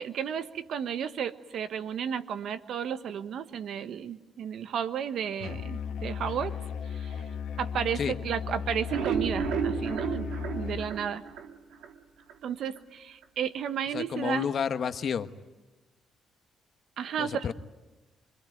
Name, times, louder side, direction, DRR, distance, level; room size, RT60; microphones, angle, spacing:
voice 1, 0.0-6.5 6.9-7.2 7.6-11.2 12.4-14.5 17.0-17.5, right 8 dB, 70° right, 11 dB, 1.2 m, -33 dB
Musical instrument, 5.4-10.9, left 7 dB, 80° left, 1.7 m, -36 dB
sound 1, 8.7-11.9 12.3-12.4 12.8-12.9 13.2-13.3, right 7 dB, 85° right, 2.2 m, -32 dB
voice 2, 13.9-15.3 17.2-17.5, left 7 dB, 55° left, 10 dB, 1.2 m, -30 dB
25.0 x 22.0 x 9.3 m, 1.1 s
cardioid pair, 90°, 0 cm